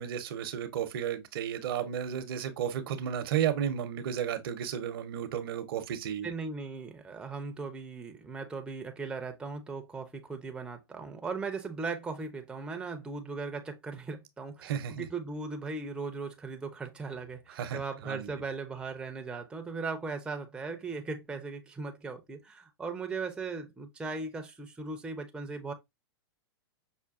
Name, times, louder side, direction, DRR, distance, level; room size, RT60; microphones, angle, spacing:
voice 1, 0.0-6.3 14.6-15.1 17.5-18.3, right 9 dB, 65° right, 0.6 m, -33 dB
voice 2, 6.2-25.7, right 4 dB, 5° right, 0.4 m, -38 dB
5.5 x 2.2 x 2.3 m
hypercardioid pair, 120°, 13 cm